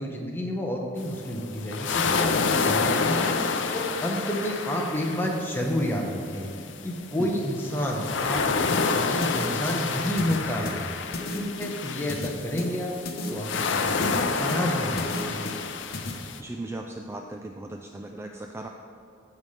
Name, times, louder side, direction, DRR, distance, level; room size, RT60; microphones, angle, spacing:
voice 1, 0.0-3.4 3.7-6.5 6.8-8.4 8.7-10.9 11.4-13.0 13.3-15.5, equal, 10° left, -1 dB, 1.1 m, -30 dB
sound 1, 1.0-16.4, left 4 dB, 70° left, 0.6 m, -29 dB
sound 2, 8.7-16.1, left 2 dB, 50° left, 1.0 m, -35 dB
voice 2, 16.4-18.7, right 2 dB, 15° right, 3 dB, 0.3 m, -37 dB
15.5 x 5.6 x 3.3 m, 2.7 s
head